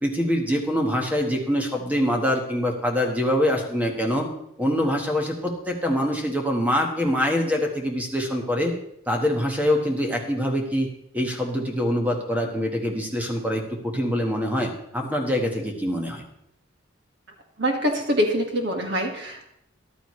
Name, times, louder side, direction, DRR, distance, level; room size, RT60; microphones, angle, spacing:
voice 1, 0.0-4.3 4.6-8.7 9.1-10.9 11.1-16.2, equal, 5° right, 2 dB, 1.3 m, -24 dB
voice 2, 17.6-19.5, equal, 55° right, 2 dB, 1.8 m, -24 dB
14.0 x 11.5 x 3.2 m, 0.76 s
head